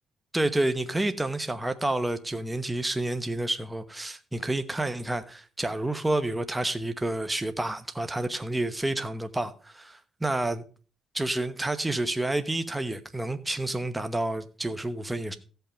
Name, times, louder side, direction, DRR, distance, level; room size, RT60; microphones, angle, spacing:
voice 1, 0.3-10.6 11.1-15.4, right 2 dB, 10° right, 1.0 m, -29 dB
15.5 x 5.8 x 5.1 m
cardioid pair, 90°, 0 cm